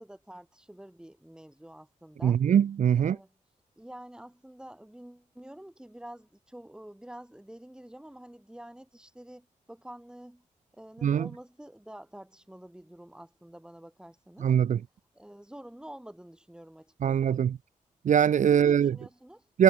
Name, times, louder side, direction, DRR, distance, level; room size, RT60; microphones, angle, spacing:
voice 1, 0.0-2.4 2.9-3.4 3.8-10.4 10.8-14.5 15.1-17.4 18.5-19.5, right 1 dB, 5° right, 3.2 m, -48 dB
voice 2, 2.2-3.2 11.0-11.3 14.4-14.8 17.0-17.5 18.0-19.0 19.5-19.6, right 8 dB, 65° right, 0.4 m, -22 dB
wide cardioid pair, 160°, 14 cm